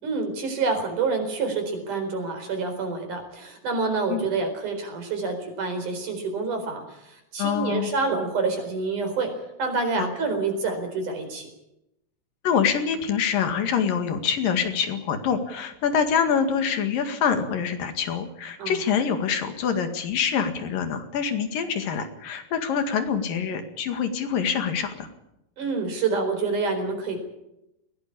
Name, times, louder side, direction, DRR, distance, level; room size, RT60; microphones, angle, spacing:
voice 1, 0.0-9.3 9.6-11.5 18.6-18.8 25.6-27.2, right 4 dB, 65° right, 5 dB, 5.7 m, -27 dB
voice 2, 7.4-7.9 10.0-10.1 12.4-25.1, left 7 dB, 80° left, 8 dB, 3.7 m, -25 dB
21.0 x 17.5 x 8.6 m, 0.85 s
omnidirectional pair, 3.9 m